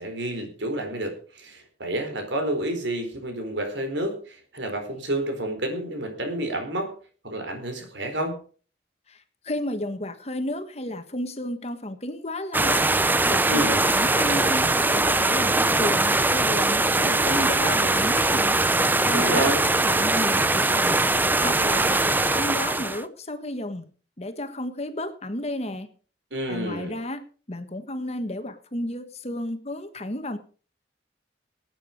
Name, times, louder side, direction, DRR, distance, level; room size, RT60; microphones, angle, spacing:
voice 1, 0.0-6.9 7.2-8.4 13.5-13.7 19.1-19.6 26.3-27.0, right 1 dB, 80° right, 5 dB, 4.4 m, -29 dB
voice 2, 9.1-12.8 13.3-18.6 19.0-19.5 19.8-21.0 21.4-23.9 24.2-25.9 26.5-30.4, left 1 dB, 35° left, 9 dB, 1.4 m, -32 dB
sound 1, 12.5-23.0, right 2 dB, 10° right, 0.5 m, -21 dB
18.5 x 9.1 x 5.2 m, 0.40 s
head